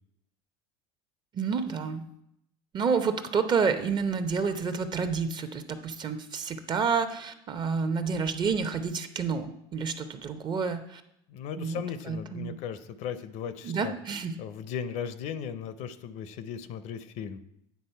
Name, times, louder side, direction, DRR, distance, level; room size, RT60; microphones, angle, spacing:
voice 1, 1.3-2.1 2.7-11.0 11.6-12.6 13.6-14.4, right 5 dB, 30° right, 9 dB, 0.7 m, -29 dB
voice 2, 11.3-13.9 14.4-17.4, left 8 dB, 55° left, 12 dB, 0.6 m, -37 dB
9.4 x 3.8 x 5.6 m, 0.78 s
supercardioid pair, 110°, 14 cm